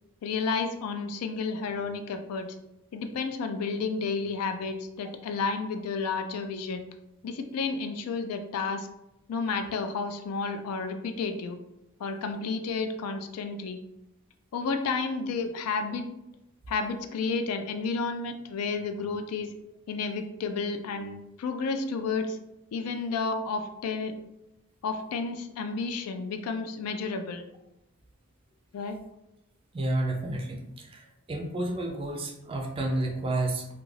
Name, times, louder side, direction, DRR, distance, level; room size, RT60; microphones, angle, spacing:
voice 1, 0.2-2.5 2.9-6.8 7.2-8.9 9.3-11.6 12.0-13.8 14.5-16.0 16.7-19.5 19.9-22.4 22.7-24.1 24.8-27.4 28.7-29.0, left 4 dB, 85° left, 7 dB, 0.3 m, -31 dB
voice 2, 29.7-33.7, right 2 dB, 25° right, 2 dB, 0.3 m, -31 dB
2.4 x 2.3 x 3.1 m, 0.88 s
head